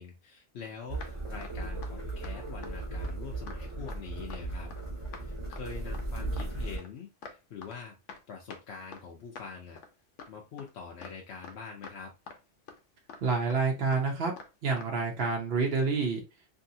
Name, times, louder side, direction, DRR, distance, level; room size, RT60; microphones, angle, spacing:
voice 1, 0.0-4.7 5.1-8.0 8.3-9.8 10.3-12.1, left 6 dB, 65° left, 0 dB, 0.8 m, -44 dB
Footsteps Sneakers Tile Fast, 0.7-0.8 1.0-1.1 1.4-1.6 1.8-1.9 2.2-2.3 2.6-2.7 3.0-3.2 3.5-3.6 3.9-4.0 4.3-4.4 4.7-4.8 5.1-5.2 5.5-5.6 5.9-6.1 6.4-6.5 6.8-7.4 7.6-7.8 8.1-8.2 8.5-8.6 8.9-9.1 9.4-9.5 9.8-9.9 10.2-10.3 10.6-10.7 11.0-11.2 11.4-11.6 11.8-12.0 12.3-12.4 12.7-12.8 13.1-13.2 13.5-13.6 13.9-14.1 14.4-14.5 14.8-14.9 15.2-15.3, left 5 dB, 90° left, 1.0 m, -46 dB
sound 1, 0.9-6.8, right 2 dB, 30° right, 1.0 m, -37 dB
voice 2, 13.2-14.3 14.6-16.2, right 4 dB, 60° right, 0 dB, 0.8 m, -28 dB
2.7 x 2.7 x 2.7 m, 0.27 s
omnidirectional pair, 1.2 m